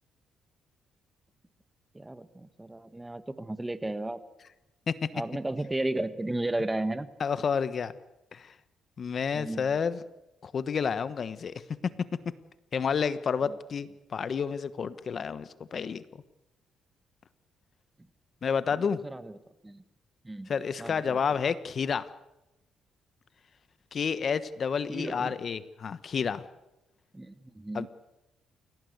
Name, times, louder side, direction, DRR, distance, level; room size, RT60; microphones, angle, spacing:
voice 1, 1.9-4.2 5.1-7.1 9.3-9.7 18.7-19.3 19.6-19.8 20.2-20.5 20.8-21.2 24.9-25.3 27.1-27.9, right 2 dB, 15° right, 12 dB, 1.5 m, -34 dB
voice 2, 7.2-7.9 8.3-8.5 9.0-10.0 10.4-11.5 11.8-11.9 12.7-16.0 18.4-19.0 20.5-22.1 23.9-26.4 27.7-27.9, left 6 dB, 50° left, 14 dB, 1.2 m, -30 dB
29.5 x 17.0 x 8.1 m, 0.93 s
cardioid pair, 90°, 0 cm